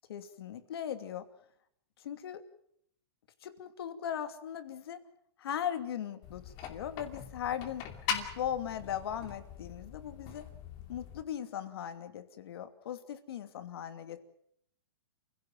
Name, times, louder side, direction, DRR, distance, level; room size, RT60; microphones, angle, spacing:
voice 1, 0.1-1.3 2.0-2.4 3.4-5.0 5.4-10.5 10.9-14.2, left 9 dB, 65° left, 9 dB, 2.7 m, -38 dB
sound 1, 6.2-11.2, left 8 dB, 30° left, 2.7 m, -41 dB
29.0 x 16.5 x 7.8 m, 0.70 s
hypercardioid pair, 160°, 14 cm